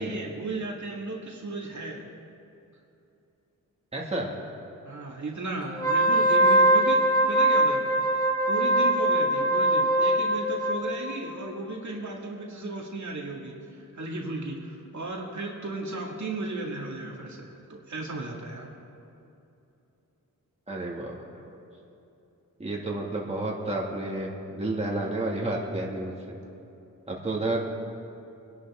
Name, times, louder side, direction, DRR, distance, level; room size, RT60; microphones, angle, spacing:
voice 1, 0.0-2.0 4.8-7.8 8.5-18.7, right 2 dB, 55° right, -1 dB, 2.2 m, -35 dB
voice 2, 3.9-4.3 20.7-21.5 22.6-26.1 27.1-27.6, right 2 dB, 20° right, -3 dB, 2.1 m, -31 dB
Wind instrument woodwind instrument, 5.7-11.0, right 1 dB, 10° left, 2.2 m, -22 dB
24.0 x 11.0 x 3.7 m, 2.8 s
wide cardioid pair, 105°, 34 cm